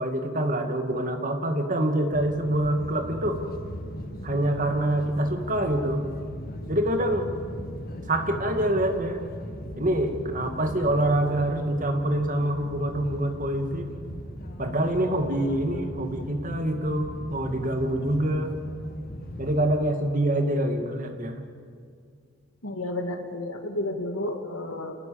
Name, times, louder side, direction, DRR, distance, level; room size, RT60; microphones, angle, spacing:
voice 1, 0.0-3.4 4.2-6.0 6.7-7.3 8.1-9.2 9.7-13.9 14.6-18.5 19.4-21.4, right 1 dB, 40° right, 5 dB, 2.2 m, -26 dB
sound 1, 2.1-19.6, left 1 dB, 45° left, 1.6 m, -39 dB
voice 2, 22.6-25.1, left 1 dB, 80° left, 4 dB, 2.5 m, -31 dB
28.5 x 19.5 x 7.0 m, 2.2 s
head